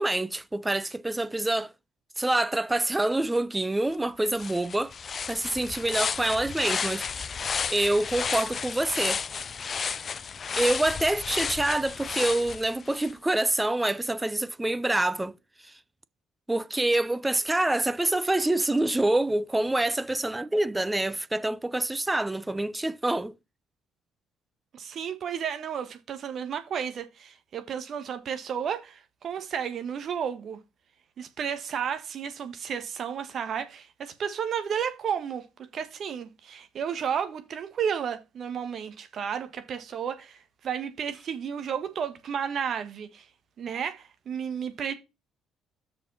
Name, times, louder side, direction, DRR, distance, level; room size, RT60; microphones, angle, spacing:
voice 1, 0.0-1.7 2.2-4.9 5.3-7.1 7.7-9.2 10.6-15.4 16.5-23.3, right 1 dB, 15° right, 0.7 m, -26 dB
sound 1, 3.9-4.0 4.3-13.1, left 6 dB, 45° left, 0.4 m, -32 dB
voice 2, 24.7-30.6 31.2-35.5 35.7-43.3 43.6-44.9, right 7 dB, 55° right, 1.5 m, -32 dB
6.5 x 5.2 x 5.6 m
hypercardioid pair, 50°, 0 cm